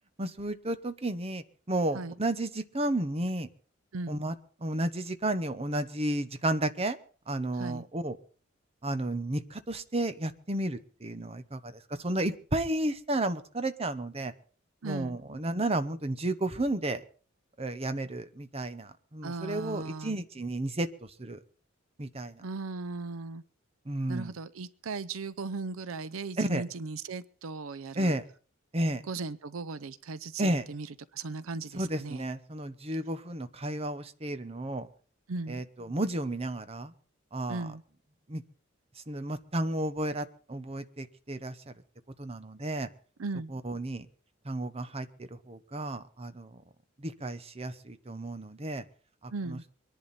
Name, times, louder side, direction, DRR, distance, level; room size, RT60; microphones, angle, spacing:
voice 1, 0.2-3.5 4.1-4.3 4.6-7.0 7.3-8.2 8.8-14.3 14.8-17.0 17.6-20.9 21.2-21.4 22.0-22.4 23.9-24.3 26.4-26.6 28.0-28.2 28.7-29.0 30.4-30.6 31.7-34.9 35.5-36.9 37.3-37.7 38.3-38.4 39.1-41.7 42.2-42.9 43.5-44.1 44.4-46.6 47.0-48.8 49.2-49.6, right 1 dB, 30° right, 10 dB, 1.0 m, -32 dB
voice 2, 7.5-7.9 14.8-15.2 19.2-20.2 22.4-23.4 24.1-28.2 29.0-32.3 35.3-35.6 37.5-37.8 43.2-43.5 49.3-49.6, right 3 dB, 85° right, 17 dB, 0.6 m, -37 dB
24.0 x 11.0 x 4.2 m, 0.41 s
head